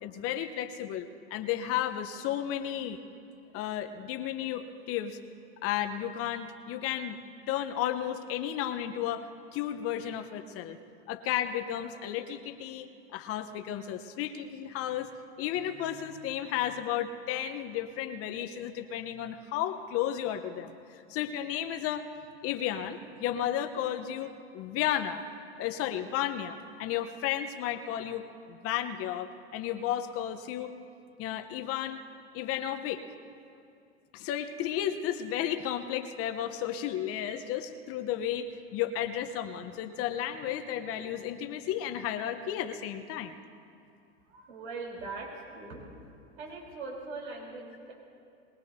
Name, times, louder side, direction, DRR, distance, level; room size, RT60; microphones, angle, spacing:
voice 1, 0.0-3.0 3.5-5.2 5.6-7.2 7.5-10.8 11.1-15.1 15.4-22.1 22.4-25.2 25.6-30.7 31.2-32.0 32.3-33.0 34.1-43.4, left 10 dB, 45° left, 7 dB, 0.9 m, -33 dB
voice 2, 44.3-45.8 46.4-47.9, right 3 dB, 75° right, -2 dB, 3.8 m, -41 dB
22.5 x 20.0 x 2.7 m, 2.4 s
hypercardioid pair, 90°, 33 cm